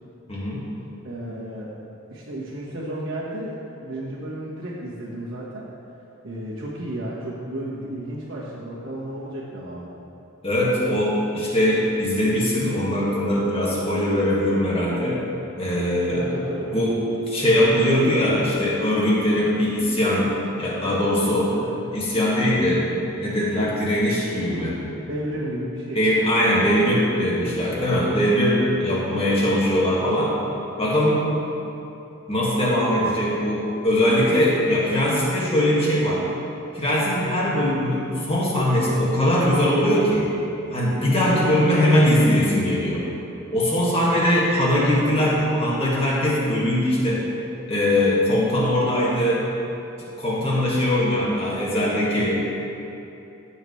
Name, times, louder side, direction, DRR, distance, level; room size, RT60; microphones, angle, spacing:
voice 1, 0.3-0.7 10.4-15.2 15.6-16.3 16.7-17.0 17.3-20.3 20.6-21.5 21.9-22.8 23.2-24.8 26.0-30.3 30.8-31.3 32.3-36.2 36.7-40.3 40.7-43.0 43.5-47.2 47.7-49.4 50.2-52.5, left 1 dB, 30° left, -6 dB, 2.0 m, -21 dB
voice 2, 1.0-1.7 2.1-5.7 6.2-10.0 16.1-16.7 21.5-21.8 25.1-26.0 28.8-29.1 41.3-41.6, right 1 dB, 65° right, -8 dB, 1.5 m, -33 dB
14.5 x 7.1 x 3.3 m, 2.9 s
head